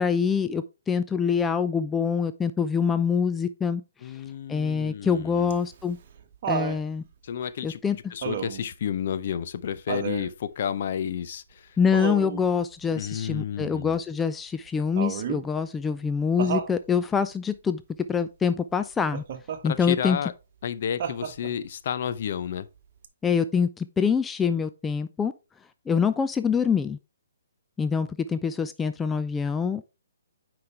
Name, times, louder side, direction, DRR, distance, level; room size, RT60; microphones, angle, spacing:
voice 1, 0.0-4.2 4.5-6.0 6.5-7.0 7.6-8.0 11.8-17.8 18.1-19.2 19.6-20.2 23.2-25.3 25.9-27.0 27.8-29.8, left 6 dB, 10° left, 0.4 m, -25 dB
voice 2, 4.0-5.5 7.2-11.8 13.0-14.0 19.6-20.3 20.6-22.7, left 8 dB, 50° left, 0.7 m, -31 dB
Laughter, 5.5-6.8 8.2-8.7 9.9-10.3 11.9-12.4 15.0-15.5 16.4-16.8 19.1-19.6 21.0-21.6 23.0-23.1, right 8 dB, 45° right, 1.2 m, -31 dB
9.5 x 5.0 x 3.3 m
figure-of-eight pair, 135°, 0 cm